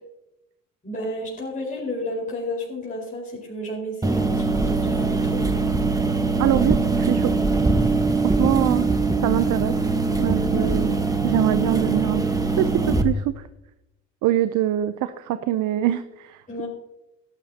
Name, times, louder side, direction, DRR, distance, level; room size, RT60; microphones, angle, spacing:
voice 1, 0.8-5.4 16.5-16.7, left 1 dB, 25° left, -5 dB, 4.6 m, -32 dB
sound 1, 4.0-13.0, right 3 dB, 10° right, 1.2 m, -22 dB
voice 2, 6.4-7.3 8.2-8.9 9.2-9.7 10.2-12.3 12.6-13.5 14.2-16.6, right 13 dB, 85° right, 11 dB, 0.7 m, -24 dB
17.0 x 12.0 x 2.9 m, 0.93 s
cardioid pair, 90°, 30 cm